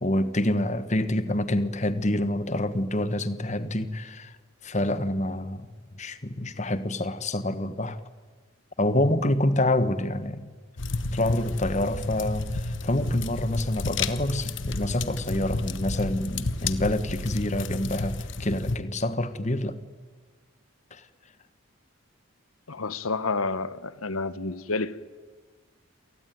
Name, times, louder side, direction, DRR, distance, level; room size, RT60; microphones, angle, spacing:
voice 1, 0.0-4.3 4.6-5.7 6.0-8.0 8.8-10.5 11.1-19.8 20.9-21.1, left 1 dB, 35° left, 1.2 m, -27 dB
sound 1, 10.8-18.8, left 3 dB, 60° left, 1.1 m, -31 dB
voice 2, 22.7-25.0, left 3 dB, 85° left, 1.1 m, -29 dB
28.0 x 18.5 x 9.3 m
head